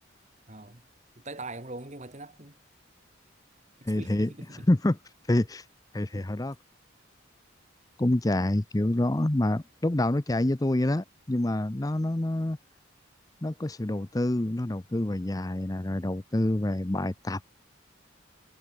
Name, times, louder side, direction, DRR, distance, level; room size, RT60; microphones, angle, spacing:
voice 1, 0.5-0.8 1.2-2.6 4.0-4.7 6.1-6.3, right 2 dB, 35° right, 2.6 m, -42 dB
voice 2, 3.8-4.3 4.7-5.0 5.3-5.7 5.9-6.5 8.0-12.6 13.4-17.4, left 1 dB, 20° left, 0.6 m, -27 dB
head